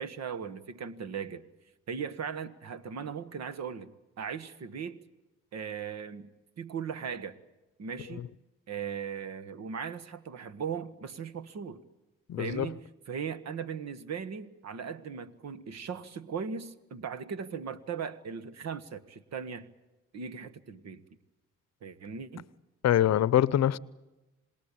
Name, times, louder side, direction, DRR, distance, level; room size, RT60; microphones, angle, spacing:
voice 1, 0.0-1.4 1.9-5.0 5.5-7.4 7.8-8.3 8.7-11.8 12.4-19.7 20.1-21.0 21.8-22.4, right 6 dB, 60° right, 1.5 m, -38 dB
voice 2, 12.3-12.7 22.8-23.8, left 11 dB, 60° left, 0.8 m, -24 dB
27.0 x 20.0 x 8.6 m
cardioid pair, 90°, 30 cm